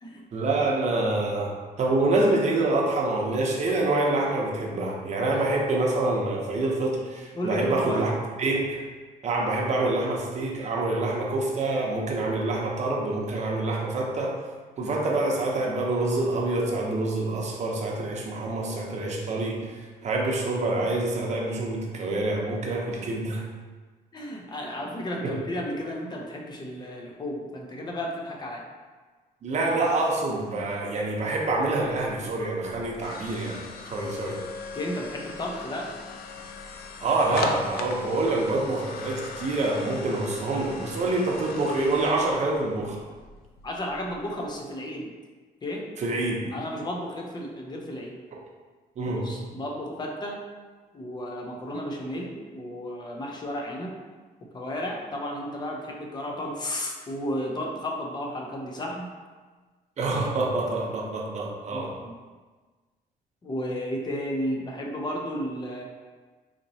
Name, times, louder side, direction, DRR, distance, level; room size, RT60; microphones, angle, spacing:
voice 1, 0.3-8.1 8.4-8.8 9.2-14.4 14.8-19.6 20.0-23.4 25.2-25.4 29.4-33.6 33.9-34.4 37.0-43.0 46.0-46.5 49.0-49.3 60.0-61.9, right 2 dB, 45° right, -1 dB, 0.7 m, -26 dB
voice 2, 7.3-8.1 24.1-28.7 34.7-35.9 43.6-45.1 45.6-45.9 46.5-48.2 49.0-50.4 50.9-54.0 54.5-59.1 61.7-62.2 63.4-65.8, equal, 25° left, 0 dB, 0.6 m, -33 dB
sound 1, 32.3-44.5, left 5 dB, 75° left, 0.4 m, -40 dB
4.3 x 2.8 x 2.7 m, 1.4 s
cardioid pair, 125°, 16 cm